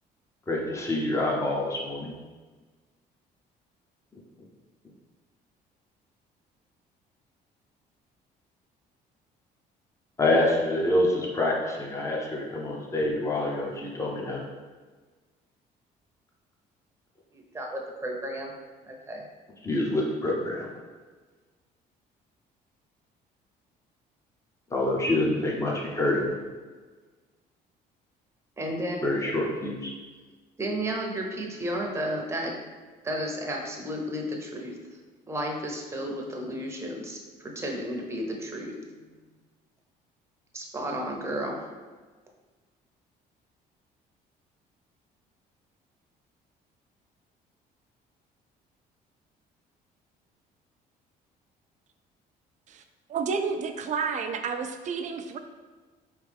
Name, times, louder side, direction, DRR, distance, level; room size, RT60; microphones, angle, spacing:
voice 1, 0.5-2.1 10.2-14.4 19.6-20.7 24.7-26.3 29.0-29.9, left 1 dB, 15° left, -3 dB, 0.8 m, -26 dB
voice 2, 17.3-18.5 18.8-19.2 28.6-29.0 30.6-32.6 33.0-34.7 35.3-38.7 40.5-41.6, right 1 dB, 15° right, 0 dB, 0.8 m, -32 dB
voice 3, 53.1-55.4, right 5 dB, 45° right, 7 dB, 0.4 m, -30 dB
4.4 x 3.2 x 3.5 m, 1.4 s
cardioid pair, 110°, 17 cm